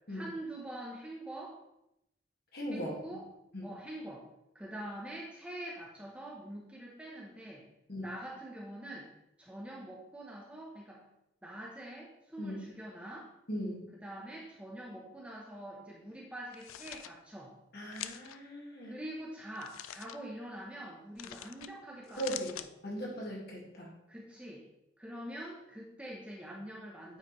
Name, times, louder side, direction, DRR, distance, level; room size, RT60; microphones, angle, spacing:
voice 1, 0.1-1.6 2.7-3.2 3.6-4.3 4.5-7.6 8.0-9.1 9.4-11.0 11.4-13.3 13.9-17.5 18.8-22.6 24.1-24.7 25.0-27.2, right 1 dB, 5° right, -3 dB, 0.8 m, -45 dB
voice 2, 2.5-3.0 3.5-3.7 7.9-8.2 12.4-12.7 13.5-13.8 17.7-19.0 22.2-22.6 22.8-23.9, equal, 50° left, -2 dB, 1.9 m, -38 dB
sound 1, 16.5-17.1 17.9-18.4 19.6-20.2 21.2-21.7 22.0-22.7, left 12 dB, 80° left, 0.3 m, -44 dB
8.9 x 4.8 x 3.1 m, 0.84 s
head